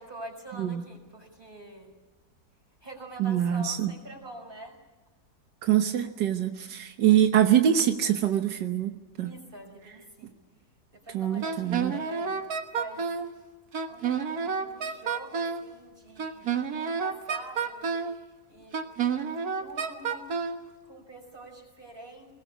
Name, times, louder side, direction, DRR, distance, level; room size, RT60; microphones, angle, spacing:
voice 1, 0.0-1.9 2.8-4.8 9.2-10.4 10.9-12.4 12.7-13.1 13.9-18.8 19.2-20.3 20.8-22.3, right 1 dB, 30° right, 2 dB, 6.0 m, -45 dB
voice 2, 3.2-3.9 5.6-9.3 11.1-12.0, right 10 dB, 90° right, 6 dB, 1.7 m, -24 dB
Wind instrument woodwind instrument, 11.4-13.3 13.7-15.7 16.2-18.2 18.7-20.6, right 6 dB, 65° right, 2.0 m, -29 dB
21.5 x 20.0 x 8.4 m, 1.2 s
omnidirectional pair, 1.8 m